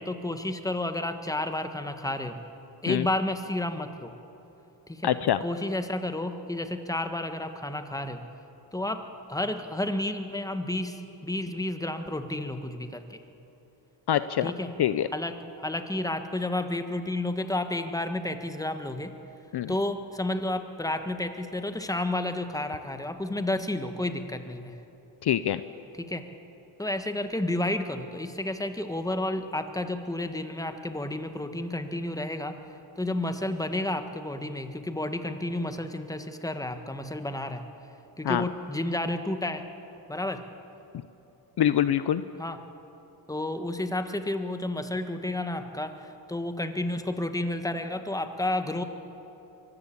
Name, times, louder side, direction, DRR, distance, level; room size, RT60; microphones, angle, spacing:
voice 1, 0.0-2.4 2.8-4.1 4.9-5.1 5.4-8.2 8.7-9.0 9.3-13.2 14.4-14.7 15.1-19.1 19.7-24.8 26.0-26.2 26.8-32.6 33.0-37.6 38.2-39.6 40.1-40.4 42.4-42.6 43.3-48.8, left 1 dB, 5° left, 8 dB, 1.4 m, -31 dB
voice 2, 5.0-5.4 14.1-14.5 14.8-15.1 19.5-19.7 25.2-25.6 38.2-38.4 41.6-42.2, left 11 dB, 55° left, 13 dB, 0.7 m, -24 dB
23.5 x 15.5 x 8.6 m, 3.0 s
cardioid pair, 95°, 47 cm